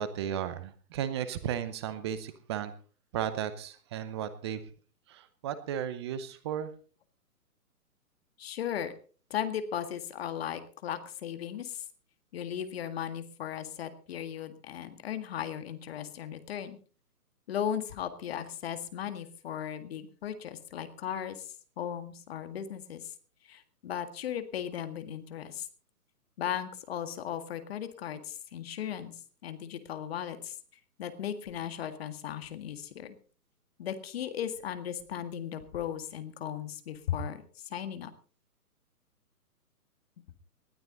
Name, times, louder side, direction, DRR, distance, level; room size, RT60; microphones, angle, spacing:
voice 1, 0.0-2.7 3.1-4.6 5.1-6.7, right 9 dB, 20° right, 13 dB, 0.7 m, -34 dB
voice 2, 8.4-8.9 9.3-11.8 12.3-16.8 17.5-23.1 23.4-25.7 26.4-30.6 31.0-33.2 33.8-38.1, left 9 dB, 40° left, 10 dB, 1.9 m, -37 dB
19.5 x 12.5 x 4.0 m, 0.39 s
figure-of-eight pair, 130°, 46 cm